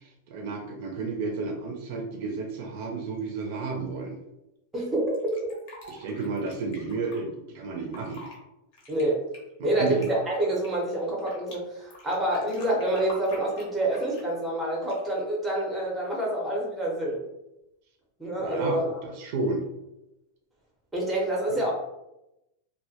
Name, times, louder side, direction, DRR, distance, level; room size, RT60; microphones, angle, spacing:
voice 1, 0.0-4.2 5.9-8.2 9.6-10.1 18.4-18.8 19.2-19.6, right 4 dB, 50° right, 2 dB, 0.4 m, -32 dB
voice 2, 4.7-5.3 8.9-9.2 9.6-17.2 18.2-19.0 20.9-21.7, right 1 dB, 5° right, -3 dB, 0.6 m, -27 dB
Fill (with liquid), 5.1-7.2 7.8-8.4 8.7-11.6 11.9-14.3 14.8-15.2, left 1 dB, 50° left, 0.7 m, -47 dB
2.1 x 2.1 x 2.7 m, 0.90 s
supercardioid pair, 160°, 0 cm